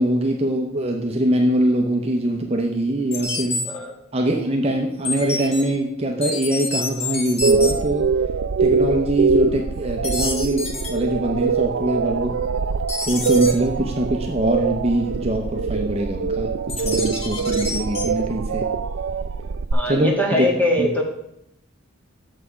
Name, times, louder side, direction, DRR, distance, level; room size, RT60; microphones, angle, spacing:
voice 1, 0.0-3.6 4.1-8.1 8.6-12.4 13.1-18.6 19.9-20.5 20.8-20.9, right 1 dB, 30° right, 2 dB, 0.7 m, -23 dB
sound 1, 3.1-3.6 5.0-5.6 6.2-7.7 10.0-10.9 12.9-13.5 16.7-18.0, left 3 dB, 30° left, 1.2 m, -27 dB
sound 2, 7.4-19.7, right 5 dB, 75° right, 0.4 m, -23 dB
voice 2, 19.7-21.0, left 1 dB, 10° left, -1 dB, 1.4 m, -22 dB
6.8 x 6.6 x 4.9 m, 0.79 s
head